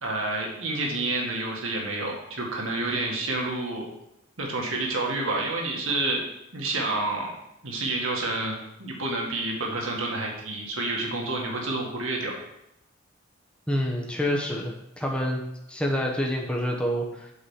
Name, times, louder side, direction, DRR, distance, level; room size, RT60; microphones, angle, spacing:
voice 1, 0.0-3.9 4.4-7.3 7.6-12.3, right 2 dB, 75° right, 0 dB, 1.8 m, -29 dB
voice 2, 13.7-15.4 15.7-17.3, equal, 5° left, -1 dB, 1.0 m, -27 dB
8.0 x 5.0 x 5.6 m, 0.84 s
head